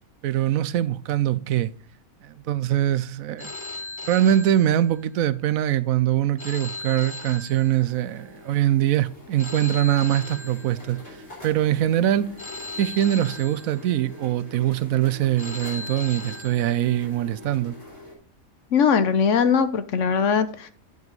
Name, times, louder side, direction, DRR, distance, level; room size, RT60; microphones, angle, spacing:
voice 1, 0.2-1.7 2.2-3.5 4.1-11.0 11.4-12.3 12.8-17.8, right 12 dB, 75° right, 1.0 m, -23 dB
Telephone, 3.4-5.3 6.4-8.3 9.4-11.3 12.4-14.2 15.4-17.2, left 3 dB, 25° left, 0.8 m, -38 dB
sound 1, 7.5-18.1, left 2 dB, 40° left, 4.9 m, -45 dB
voice 2, 18.7-20.7, left 6 dB, 60° left, 1.2 m, -20 dB
9.3 x 7.3 x 4.0 m
omnidirectional pair, 1.5 m